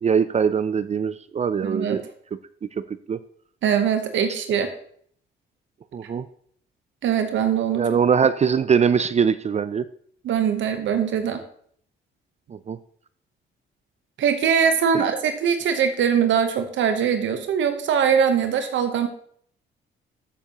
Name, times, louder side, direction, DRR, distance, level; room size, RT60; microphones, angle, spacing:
voice 1, 0.0-2.0 2.8-3.2 5.9-6.3 7.7-9.8 12.5-12.8 14.9-15.0, right 7 dB, 35° right, 14 dB, 0.4 m, -22 dB
voice 2, 1.6-2.0 3.6-4.7 7.0-8.0 10.2-11.4 14.2-19.1, right 7 dB, 70° right, 7 dB, 1.0 m, -22 dB
14.0 x 7.1 x 2.9 m, 0.62 s
cardioid pair, 90°, 20 cm